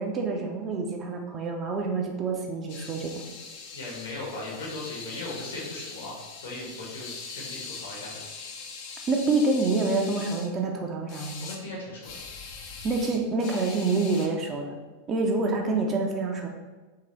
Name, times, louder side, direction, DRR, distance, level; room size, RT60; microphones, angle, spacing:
voice 1, 0.0-3.2 9.1-11.4 12.8-14.7 15.1-16.5, right 3 dB, 25° right, 2 dB, 0.6 m, -27 dB
sound 1, 2.7-10.5 11.1-11.6 12.0-14.3, left 5 dB, 45° left, 0.6 m, -41 dB
voice 2, 3.7-8.3 11.4-12.2, left 2 dB, 65° left, -3 dB, 1.3 m, -38 dB
3.8 x 3.0 x 4.3 m, 1.3 s
figure-of-eight pair, 90°, 0 cm